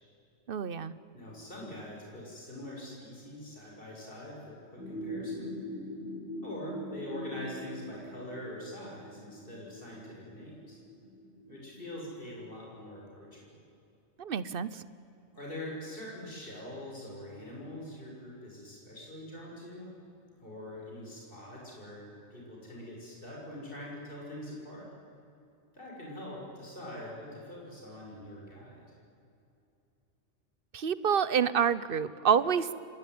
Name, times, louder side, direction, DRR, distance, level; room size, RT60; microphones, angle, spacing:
voice 1, 0.5-0.9 14.2-14.8 30.7-32.7, right 7 dB, 55° right, 16 dB, 1.0 m, -28 dB
voice 2, 1.1-5.5 6.4-10.8 11.5-13.6 15.3-19.9 20.4-24.9 25.7-28.8, left 1 dB, 50° left, -3 dB, 6.6 m, -44 dB
sound 1, 4.8-12.3, equal, 10° right, 5.4 m, -43 dB
25.5 x 21.0 x 9.4 m, 2.7 s
omnidirectional pair, 1.2 m